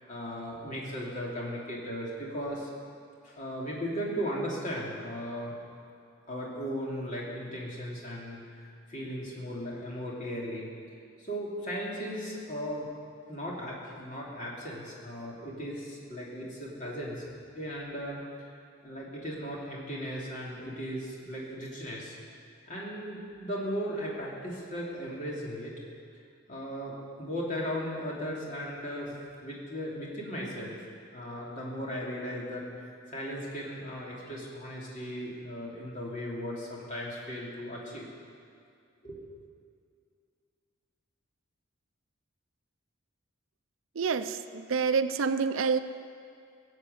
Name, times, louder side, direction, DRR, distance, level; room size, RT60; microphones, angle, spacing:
voice 1, 0.1-2.7 3.2-5.6 6.3-10.7 11.2-12.9 13.3-17.2 17.5-18.5 18.8-22.2 22.7-25.7 26.5-29.2 29.4-30.8 31.1-38.1 39.0-39.2, equal, 35° left, -4 dB, 2.9 m, -37 dB
voice 2, 44.0-45.8, right 5 dB, 70° right, 11 dB, 0.5 m, -27 dB
16.5 x 7.9 x 7.9 m, 2.4 s
head